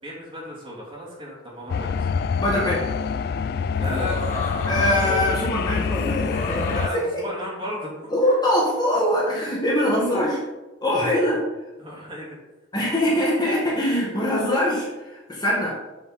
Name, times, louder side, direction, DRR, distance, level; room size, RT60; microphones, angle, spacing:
voice 1, 0.0-2.1 3.8-4.2 4.4-4.5 6.7-8.1 9.3-9.4 11.8-12.4, equal, 30° right, -6 dB, 3.2 m, -34 dB
sound 1, 1.7-6.9, left 5 dB, 60° left, 0.3 m, -26 dB
voice 2, 2.4-2.9 4.7-7.1 8.1-10.4 10.8-11.4 12.7-15.8, left 1 dB, 25° left, -4 dB, 1.9 m, -23 dB
sound 2, 3.7-5.3 5.9-6.9, left 2 dB, 40° left, 2.1 m, -30 dB
7.8 x 7.1 x 4.3 m, 1.1 s
head